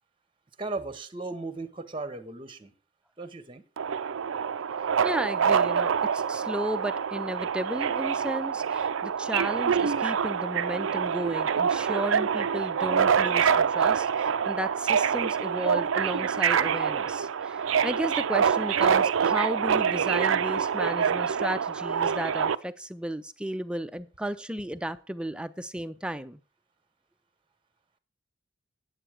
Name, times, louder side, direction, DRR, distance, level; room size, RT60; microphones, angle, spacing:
voice 1, 0.6-2.7 3.2-3.6, right 3 dB, 25° right, 0.8 m, -36 dB
Subway metro underground, 3.8-22.6, right 7 dB, 85° right, 0.5 m, -26 dB
voice 2, 5.0-26.4, right 1 dB, 5° right, 0.5 m, -34 dB
9.0 x 7.9 x 4.8 m
head